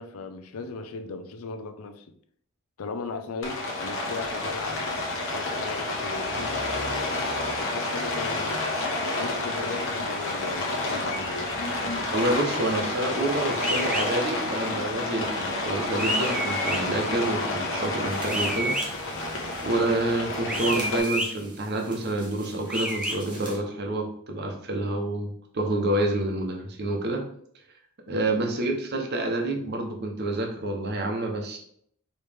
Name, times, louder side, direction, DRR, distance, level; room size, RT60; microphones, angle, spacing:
voice 1, 0.0-2.1 2.8-4.9 5.3-7.3 7.6-8.7 9.2-11.5 28.1-28.4, left 4 dB, 80° left, 0.5 m, -38 dB
Rain, 3.4-21.0, left 2 dB, 60° left, 1.1 m, -29 dB
voice 2, 12.1-18.7 19.6-27.2 28.1-31.6, right 2 dB, 50° right, 0.9 m, -28 dB
sound 1, 13.6-14.1 16.0-16.8 18.3-18.9 20.5-21.3 22.7-23.2, equal, 5° right, 0.7 m, -29 dB
sound 2, 18.0-23.6, right 2 dB, 20° right, 1.2 m, -44 dB
4.9 x 3.1 x 3.5 m
head